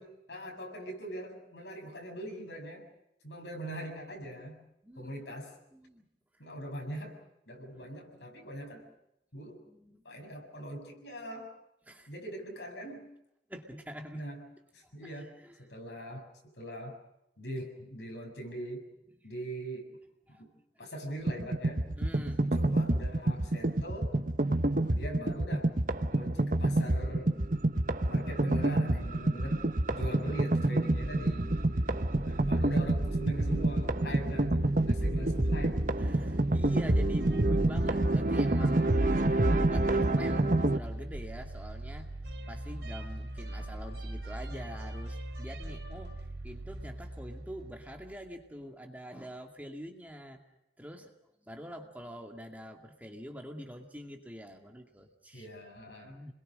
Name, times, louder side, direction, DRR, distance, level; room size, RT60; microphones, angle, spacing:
voice 1, 0.0-2.9 3.2-4.6 5.0-5.6 6.4-7.2 7.5-8.9 9.3-9.6 10.0-11.5 12.1-13.1 14.1-14.5 14.7-16.2 16.6-17.0 17.4-18.9 19.2-19.9 20.4-20.5 20.8-21.8 22.4-24.1 24.8-25.7 26.1-27.3 28.1-29.6 29.9-31.6 32.2-35.8 55.3-56.2, equal, 80° left, 3 dB, 7.0 m, -41 dB
voice 2, 5.7-6.1 7.7-7.9 9.7-10.0 11.9-12.1 13.5-14.2 15.0-15.7 20.3-20.4 22.0-22.6 27.5-27.7 35.0-35.1 35.9-42.1 42.5-46.1 46.4-50.4 50.8-51.1 51.4-55.5 56.0-56.3, equal, 10° right, 3 dB, 2.2 m, -45 dB
sound 1, 21.3-40.8, right 1 dB, 50° right, 1.0 m, -28 dB
sound 2, 31.0-48.3, right 1 dB, 70° right, 3.5 m, -40 dB
29.5 x 21.5 x 6.5 m, 0.83 s
head